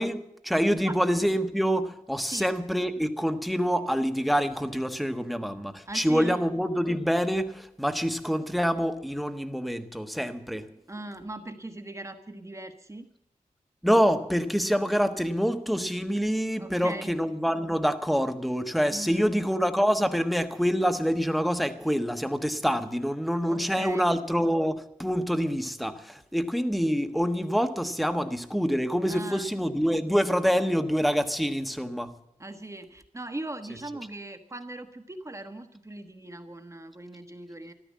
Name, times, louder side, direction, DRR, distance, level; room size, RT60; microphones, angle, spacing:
voice 1, 0.0-10.7 13.8-32.1, equal, ahead, 8 dB, 1.3 m, -26 dB
voice 2, 2.2-2.5 5.9-6.4 10.9-13.1 16.6-17.2 18.9-19.3 23.5-24.1 29.1-29.5 32.4-37.7, right 2 dB, 20° right, 7 dB, 1.2 m, -39 dB
14.0 x 13.0 x 7.4 m, 0.80 s
wide cardioid pair, 100°, 14 cm